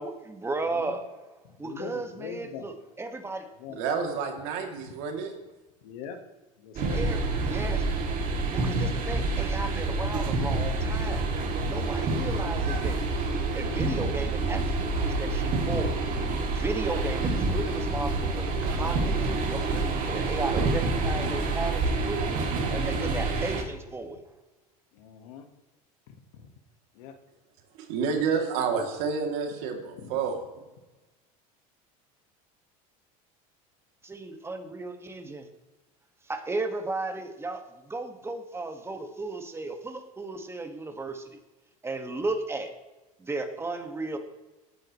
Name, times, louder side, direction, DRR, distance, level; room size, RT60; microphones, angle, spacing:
voice 1, 0.0-1.0 1.6-3.8 6.9-7.8 8.5-11.2 11.7-13.0 13.5-16.0 16.5-22.4 22.7-24.3 34.0-35.4 36.3-41.4 41.8-42.7 43.2-44.2, right 3 dB, 15° right, 5 dB, 1.8 m, -35 dB
voice 2, 1.6-2.7 3.6-3.8 5.8-6.3 6.6-7.1 11.8-12.3 22.8-23.3 24.9-25.5 26.1-26.5 26.9-27.2 29.9-30.1, left 7 dB, 80° left, 7 dB, 1.7 m, -42 dB
voice 3, 3.8-5.3 27.8-30.4, right 5 dB, 70° right, 3 dB, 2.9 m, -29 dB
sound 1, 6.8-23.6, right 3 dB, 45° right, 2.8 m, -27 dB
18.5 x 9.7 x 3.2 m, 1.1 s
supercardioid pair, 105°, 18 cm